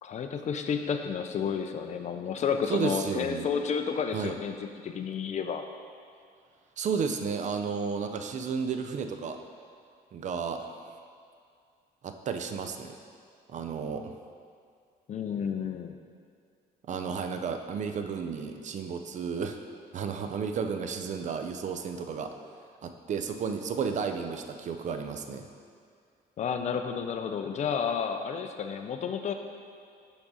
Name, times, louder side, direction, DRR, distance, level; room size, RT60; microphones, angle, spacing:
voice 1, 0.0-5.6 15.1-16.0 26.4-29.3, left 6 dB, 45° left, 6 dB, 0.5 m, -31 dB
voice 2, 2.7-3.5 4.1-4.4 6.8-9.4 10.1-10.7 12.0-13.0 13.5-14.1 16.9-19.6 19.9-22.3 22.8-25.5, right 6 dB, 45° right, 6 dB, 0.5 m, -32 dB
5.9 x 5.0 x 4.1 m, 2.3 s
cardioid pair, 120°, 17 cm